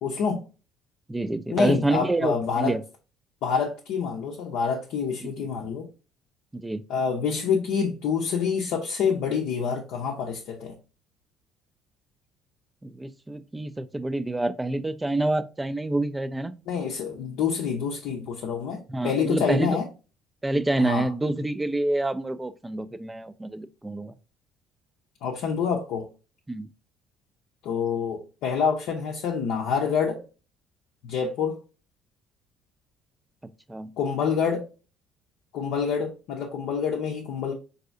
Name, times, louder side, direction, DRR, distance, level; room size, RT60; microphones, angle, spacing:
voice 1, 0.0-0.4 1.5-2.8 3.4-5.9 6.9-10.8 16.7-19.9 20.8-21.1 25.2-26.1 27.6-30.2 31.0-31.6 34.0-34.7 35.5-37.5, left 6 dB, 70° left, 0.5 m, -27 dB
voice 2, 1.1-2.8 5.2-5.3 6.5-6.8 12.8-16.6 18.9-19.8 20.4-24.1 26.5-26.7 33.7-33.9, right 2 dB, 15° right, 0.3 m, -27 dB
3.9 x 2.7 x 2.5 m
hypercardioid pair, 60°, 0 cm